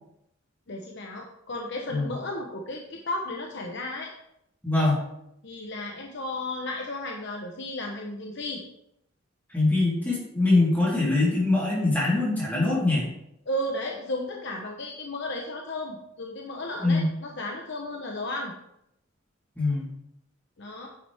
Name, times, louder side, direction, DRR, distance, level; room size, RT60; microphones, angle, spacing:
voice 1, 0.7-4.1 5.4-8.6 13.5-18.5 20.6-20.9, left 1 dB, 65° left, 1 dB, 1.0 m, -34 dB
voice 2, 4.6-5.0 9.5-13.1 16.8-17.1 19.6-19.9, left 2 dB, 10° left, -7 dB, 3.7 m, -23 dB
10.0 x 7.2 x 3.5 m, 0.79 s
head